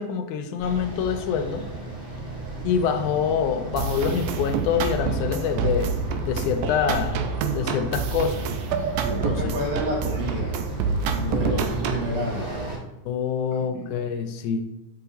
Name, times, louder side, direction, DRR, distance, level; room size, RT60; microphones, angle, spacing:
voice 1, 0.0-1.7 2.6-5.9 6.2-7.2 7.5-8.5 9.1-9.5 11.3-11.6 13.1-14.7, left 7 dB, 85° left, 6 dB, 2.0 m, -26 dB
sound 1, 0.6-12.8, right 1 dB, 10° right, 1.7 m, -35 dB
sound 2, 3.8-12.1, right 5 dB, 85° right, 2.1 m, -28 dB
voice 2, 9.0-10.6 11.1-12.5 13.5-13.9, equal, 60° right, -3 dB, 2.5 m, -30 dB
8.7 x 5.7 x 2.7 m, 0.96 s
omnidirectional pair, 3.6 m